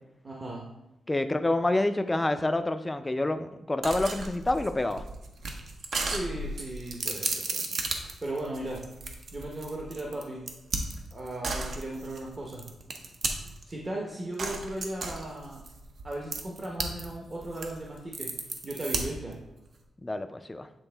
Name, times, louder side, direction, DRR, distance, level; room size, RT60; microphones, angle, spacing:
voice 1, 0.2-0.6 6.0-8.8 9.3-10.4 11.1-12.6 13.6-15.6 16.0-19.4, right 1 dB, 30° right, -2 dB, 0.8 m, -37 dB
voice 2, 1.1-5.0 20.0-20.7, left 2 dB, 15° left, 9 dB, 0.4 m, -27 dB
sound 1, 3.8-13.7 14.4-17.1 17.4-19.3, right 3 dB, 60° right, 0.7 m, -34 dB
7.9 x 3.5 x 3.3 m, 0.94 s
wide cardioid pair, 125°, 0 cm